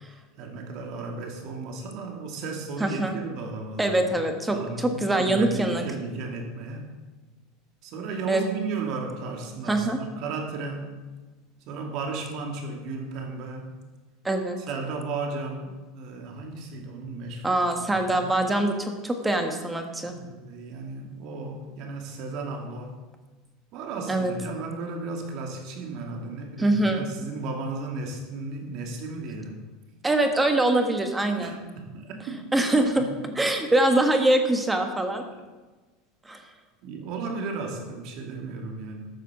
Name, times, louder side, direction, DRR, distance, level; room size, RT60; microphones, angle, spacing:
voice 1, 0.4-4.1 4.5-6.9 7.8-11.0 11.7-13.7 14.7-18.2 20.0-23.0 23.7-29.6 31.4-32.4 33.2-33.3 36.8-39.1, right 3 dB, 55° right, 2 dB, 2.5 m, -35 dB
voice 2, 2.8-3.2 3.8-5.8 8.3-8.4 9.7-10.0 14.2-14.6 17.4-20.1 24.1-24.3 26.6-27.0 30.0-31.6 32.5-33.1 33.3-35.3 36.2-36.4, right 1 dB, 10° right, 5 dB, 1.5 m, -23 dB
12.5 x 6.7 x 6.1 m, 1.2 s
supercardioid pair, 125°, 0 cm